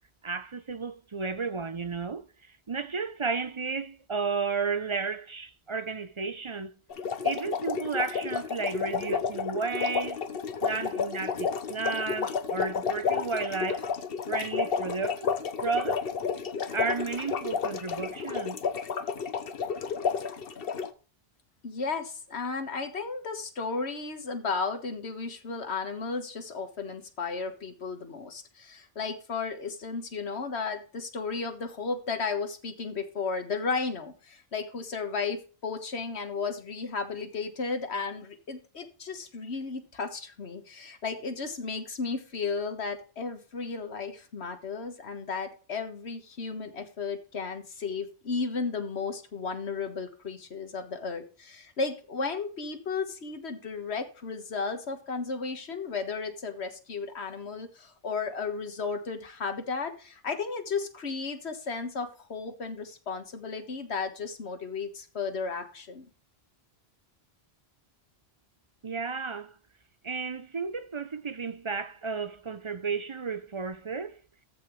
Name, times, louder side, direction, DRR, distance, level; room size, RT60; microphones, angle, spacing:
voice 1, 0.2-2.3 2.7-6.7 7.2-10.2 10.6-13.9 14.3-15.3 15.6-16.1 16.7-18.6 68.8-69.6 70.0-74.2, right 4 dB, 35° right, 0.5 m, -33 dB
sound 1, 6.9-20.9, left 6 dB, 65° left, 1.1 m, -31 dB
voice 2, 21.6-66.1, left 4 dB, 85° left, 1.7 m, -34 dB
14.0 x 6.0 x 3.1 m
omnidirectional pair, 1.1 m